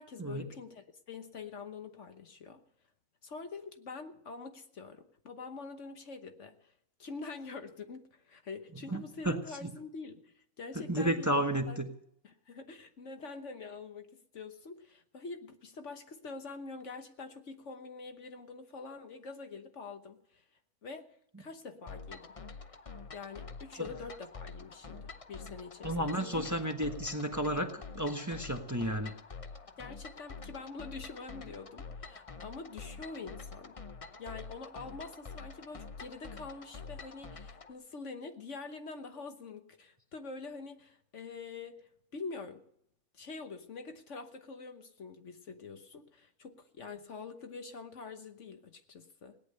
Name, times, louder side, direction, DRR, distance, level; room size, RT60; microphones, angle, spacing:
voice 1, 0.0-2.6 3.2-6.7 7.0-11.8 12.2-20.4 20.8-21.1 21.4-22.4 23.1-26.5 29.8-33.8 34.2-42.6 43.1-49.4, left 4 dB, 60° left, 7 dB, 1.4 m, -45 dB
voice 2, 8.9-9.4 10.9-11.9 25.8-29.1, right 1 dB, 15° right, 5 dB, 1.2 m, -32 dB
sound 1, 21.9-37.7, left 4 dB, 30° left, 0.7 m, -47 dB
17.5 x 10.5 x 6.6 m, 0.70 s
omnidirectional pair, 1.5 m